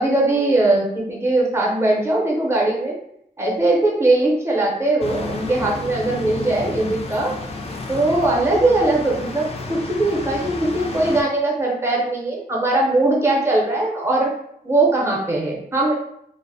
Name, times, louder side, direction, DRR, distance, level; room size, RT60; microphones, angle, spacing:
voice 1, 0.0-3.0 3.4-7.3 7.9-14.3 14.6-15.9, right 2 dB, 15° right, -3 dB, 0.6 m, -20 dB
sound 1, 5.0-11.2, left 3 dB, 35° left, 0.3 m, -31 dB
2.5 x 2.0 x 2.6 m, 0.74 s
wide cardioid pair, 140°, 17 cm